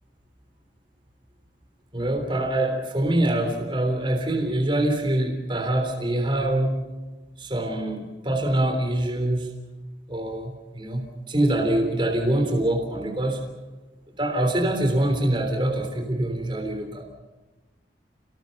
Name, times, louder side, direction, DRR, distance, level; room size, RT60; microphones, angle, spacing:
voice 1, 1.9-6.8 7.4-9.5 10.1-13.4 14.2-17.1, right 1 dB, 30° right, 4 dB, 3.4 m, -24 dB
29.5 x 19.0 x 6.9 m, 1.1 s
head